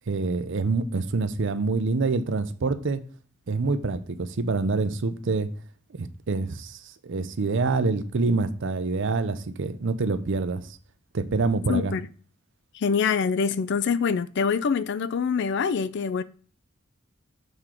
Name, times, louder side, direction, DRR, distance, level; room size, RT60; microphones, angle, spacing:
voice 1, 0.1-3.0 3.5-5.5 5.9-10.8 11.1-11.9, right 3 dB, 65° right, 0.6 m, -26 dB
voice 2, 11.7-12.0 12.7-16.2, left 6 dB, 60° left, 0.4 m, -25 dB
6.6 x 3.7 x 4.4 m
head